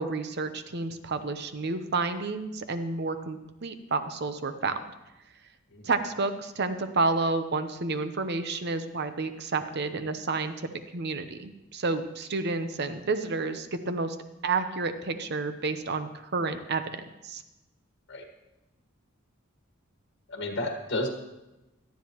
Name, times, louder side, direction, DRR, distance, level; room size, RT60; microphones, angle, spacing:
voice 1, 0.0-4.7 5.8-10.5 10.9-14.2 14.4-16.8 17.2-17.4, right 3 dB, 55° right, 9 dB, 0.8 m, -30 dB
voice 2, 20.3-21.1, left 2 dB, 65° left, 3 dB, 1.6 m, -32 dB
17.5 x 12.5 x 3.1 m, 1.0 s
head